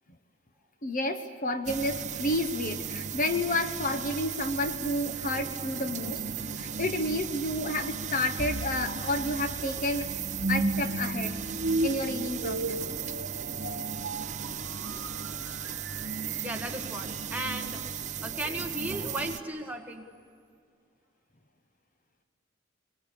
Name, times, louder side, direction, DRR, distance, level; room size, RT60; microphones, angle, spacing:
voice 1, 0.8-6.2 6.5-10.1 10.5-11.4 11.8-12.8, left 1 dB, 40° left, 7 dB, 1.1 m, -30 dB
sound 1, 1.6-19.4, right 7 dB, 35° right, 0.7 m, -36 dB
sound 2, 8.4-17.5, right 1 dB, 60° right, 1.6 m, -35 dB
voice 2, 14.9-15.5 16.4-17.8 18.2-20.1, right 1 dB, 10° right, 2 dB, 1.7 m, -36 dB
25.0 x 23.0 x 8.5 m, 2.3 s
head